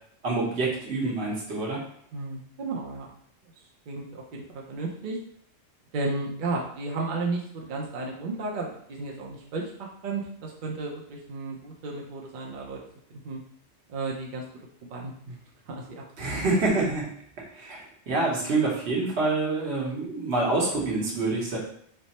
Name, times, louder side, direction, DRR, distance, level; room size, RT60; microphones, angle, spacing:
voice 1, 0.2-1.8 16.2-17.0 17.5-21.6, right 3 dB, 75° right, -3 dB, 1.2 m, -26 dB
voice 2, 2.1-3.1 3.9-5.2 5.9-9.7 10.0-12.8 13.1-13.4 13.9-14.4 14.9-15.4 15.7-16.5 16.8-16.9, right 3 dB, 55° right, -2 dB, 0.7 m, -33 dB
3.3 x 2.0 x 4.0 m, 0.65 s
omnidirectional pair, 1.1 m